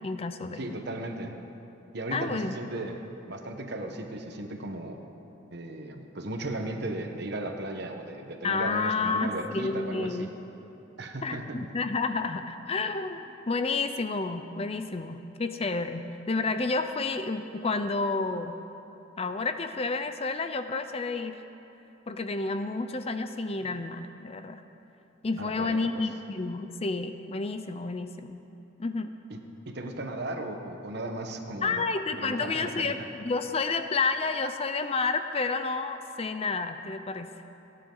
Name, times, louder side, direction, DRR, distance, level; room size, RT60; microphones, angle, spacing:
voice 1, 0.0-0.6 2.1-2.6 8.4-10.3 11.2-18.6 19.2-21.4 22.1-24.6 25.2-28.4 28.8-29.1 31.6-37.3, left 3 dB, 30° left, 9 dB, 0.5 m, -30 dB
voice 2, 0.5-1.4 1.9-3.0 3.3-5.0 5.5-10.3 11.0-11.6 25.4-26.1 29.3-31.9 32.2-33.1, right 1 dB, 55° right, 4 dB, 1.2 m, -36 dB
29.5 x 9.9 x 3.9 m, 2.9 s
head